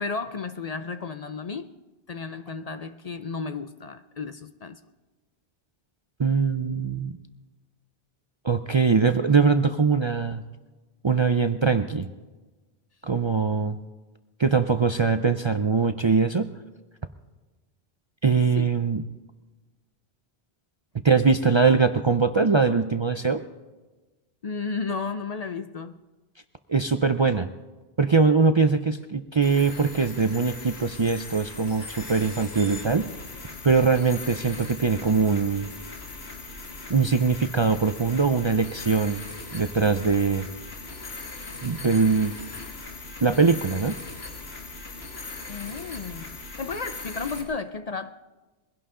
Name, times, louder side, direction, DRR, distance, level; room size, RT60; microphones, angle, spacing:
voice 1, 0.0-1.8 2.1-4.8 18.6-18.7 24.4-26.0 45.5-48.1, left 4 dB, 45° left, 10 dB, 0.6 m, -33 dB
voice 2, 6.2-7.2 8.4-10.4 11.0-12.1 13.0-13.8 14.4-16.5 18.2-19.0 21.0-23.4 26.7-27.5 28.0-33.1 33.6-35.7 36.9-39.2 39.5-40.5 41.6-42.3 43.2-44.0, right 5 dB, 35° right, 9 dB, 0.5 m, -22 dB
sound 1, 29.4-47.4, left 3 dB, 85° left, 2.2 m, -39 dB
22.0 x 16.5 x 3.8 m, 1.2 s
omnidirectional pair, 1.0 m